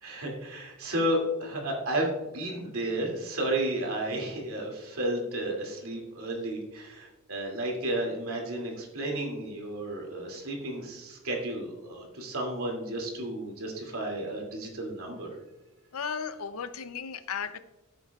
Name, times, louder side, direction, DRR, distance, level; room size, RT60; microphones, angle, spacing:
voice 1, 0.0-15.3, right 1 dB, 80° right, 2.6 m, -32 dB
voice 2, 15.9-17.6, left 6 dB, 80° left, 0.6 m, -35 dB
15.0 x 7.9 x 2.4 m
head